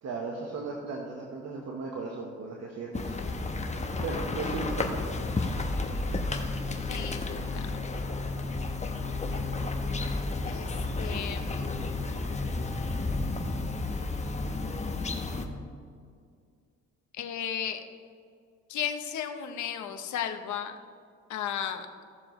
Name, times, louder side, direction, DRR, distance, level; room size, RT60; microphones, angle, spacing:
voice 1, 0.0-3.2 4.0-5.0, right 3 dB, 60° right, -1 dB, 1.3 m, -36 dB
sound 1, 2.9-15.5, left 3 dB, 25° left, 1.0 m, -32 dB
voice 2, 6.8-7.7 10.4-10.7 11.0-11.8 17.1-17.8 18.7-20.8 21.3-21.9, left 9 dB, 70° left, 6 dB, 0.9 m, -34 dB
15.5 x 6.9 x 3.1 m, 2.2 s
cardioid pair, 90°, 30 cm